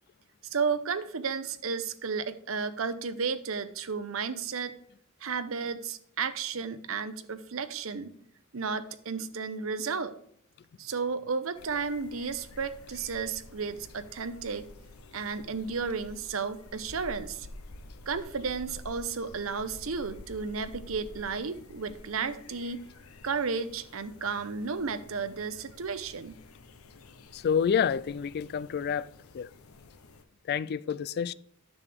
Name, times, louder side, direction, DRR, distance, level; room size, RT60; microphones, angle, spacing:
voice 1, 0.4-4.8 5.2-8.2 8.5-10.1 10.8-14.7 15.1-17.5 18.1-22.9 23.2-26.4, right 5 dB, 70° right, 0.7 m, -33 dB
sound 1, 11.5-30.2, left 2 dB, 90° left, 0.8 m, -50 dB
voice 2, 27.3-29.1 29.3-29.5 30.5-31.3, left 7 dB, 50° left, 0.3 m, -28 dB
9.8 x 6.8 x 3.5 m
head